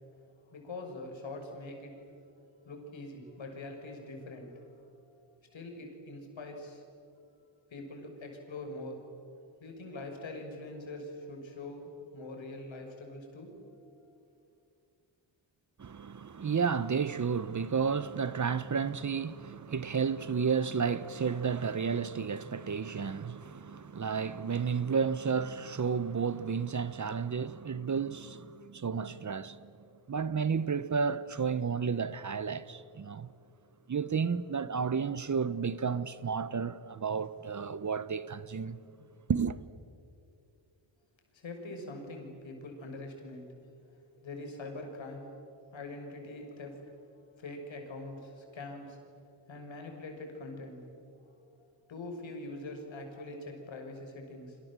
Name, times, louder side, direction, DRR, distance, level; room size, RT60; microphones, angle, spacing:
voice 1, 0.5-2.2 2.6-5.1 5.5-6.8 7.7-9.2 9.6-14.1 41.3-43.5 44.2-45.3 45.7-47.1 47.4-49.0 49.5-50.9 51.1-54.6, left 2 dB, 70° left, 6.3 m, -44 dB
voice 2, 15.8-29.7 30.1-33.3 33.9-38.8 39.3-39.6, right 6 dB, 40° right, 0.9 m, -32 dB
29.5 x 25.5 x 7.6 m
cardioid pair, 85°, 47 cm